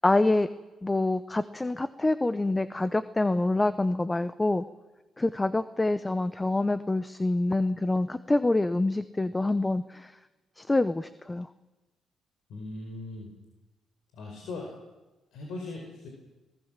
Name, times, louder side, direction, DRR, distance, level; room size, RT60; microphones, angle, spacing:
voice 1, 0.0-0.5 0.8-4.6 5.2-10.1 10.6-11.5, left 2 dB, 15° left, 13 dB, 0.8 m, -26 dB
voice 2, 12.5-13.3 14.2-14.7 15.3-16.1, left 2 dB, 80° left, 1 dB, 4.7 m, -39 dB
24.5 x 18.5 x 7.5 m, 1.1 s
cardioid pair, 90°, 0 cm